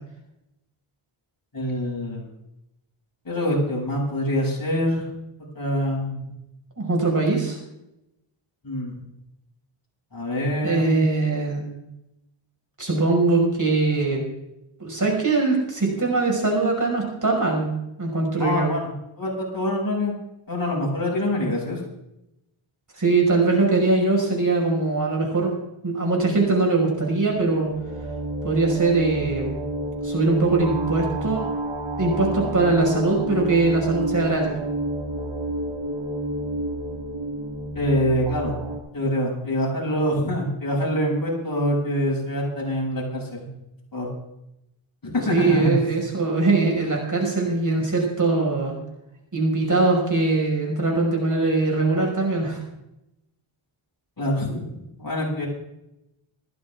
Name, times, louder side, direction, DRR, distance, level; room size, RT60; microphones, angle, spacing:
voice 1, 1.5-2.3 3.2-5.1 5.5-6.3 8.6-9.0 10.1-11.0 18.4-18.8 19.2-20.1 20.5-21.8 37.7-38.5 38.9-43.5 43.9-44.1 45.0-45.7 54.2-55.5, equal, 45° left, -3 dB, 7.5 m, -25 dB
voice 2, 6.8-7.6 10.6-11.6 12.8-14.2 14.8-17.7 18.0-18.7 23.0-25.5 25.8-27.7 28.4-29.5 30.0-31.5 32.0-34.5 45.3-48.7 49.3-52.6, right 3 dB, 35° right, 0 dB, 5.8 m, -21 dB
sound 1, 27.3-38.8, right 1 dB, 65° right, 4.2 m, -30 dB
18.0 x 15.0 x 3.7 m, 0.85 s
wide cardioid pair, 90°, 49 cm